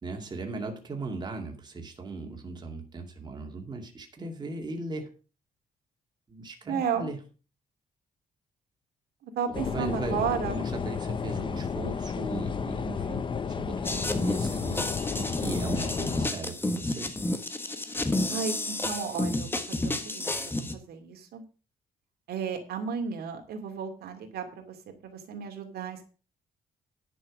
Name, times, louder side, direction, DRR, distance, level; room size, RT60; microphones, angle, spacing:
voice 1, 0.0-5.1 6.3-7.2 9.5-17.2, right 3 dB, 25° right, 2 dB, 2.2 m, -38 dB
voice 2, 6.7-7.1 9.2-10.6 18.3-21.4 22.3-24.8 25.0-26.1, right 6 dB, 85° right, 4 dB, 2.5 m, -33 dB
sound 1, 9.5-16.3, left 6 dB, 30° left, 0.7 m, -32 dB
sound 2, 13.8-20.7, left 2 dB, 15° left, 1.3 m, -31 dB
10.5 x 6.2 x 6.3 m, 0.36 s
cardioid pair, 135°, 16 cm